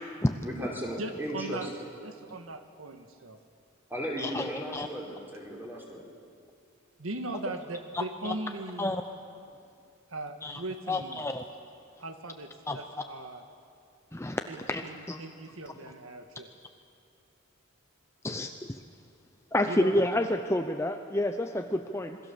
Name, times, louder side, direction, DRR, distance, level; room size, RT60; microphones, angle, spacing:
voice 1, 0.4-1.6 3.9-6.0, equal, 10° right, -2 dB, 4.6 m, -36 dB
voice 2, 1.0-1.7 2.0-3.4 7.0-8.9 10.1-11.2 12.0-13.4 14.5-16.5 19.6-20.1, right 2 dB, 80° right, 6 dB, 1.6 m, -39 dB
voice 3, 4.2-4.9 7.9-8.3 8.8-9.0 10.4-10.6 10.9-11.4 12.7-12.8 14.1-14.4 14.7-15.2 18.2-18.8 19.5-22.2, left 1 dB, 15° left, 6 dB, 0.7 m, -29 dB
27.0 x 22.0 x 7.1 m, 2.4 s
head